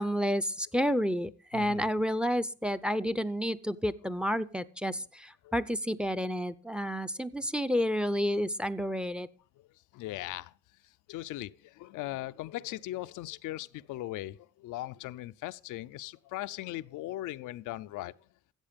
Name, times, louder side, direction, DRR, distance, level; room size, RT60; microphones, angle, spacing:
voice 1, 0.0-9.3, equal, 5° right, 0.5 m, -30 dB
voice 2, 1.5-1.9 5.4-5.5 9.6-9.7 9.9-10.5 11.1-18.1, left 16 dB, 85° left, 0.5 m, -39 dB
14.5 x 8.0 x 5.1 m
cardioid pair, 90°, 30 cm